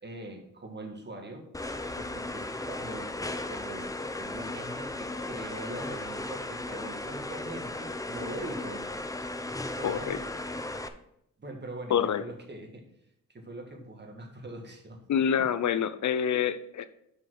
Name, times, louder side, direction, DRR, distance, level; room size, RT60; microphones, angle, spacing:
voice 1, 0.0-1.5 2.0-3.1 3.5-3.9 4.2-8.9 9.7-10.2 11.4-12.8 13.3-15.0 15.4-15.5, right 1 dB, 35° right, 3 dB, 1.7 m, -42 dB
sound 1, 1.5-10.9, left 2 dB, 10° left, 0.6 m, -36 dB
voice 2, 9.8-10.2 11.9-12.2 15.1-16.9, left 8 dB, 60° left, 13 dB, 0.7 m, -27 dB
5.6 x 4.9 x 6.0 m, 0.76 s
cardioid pair, 65°, 32 cm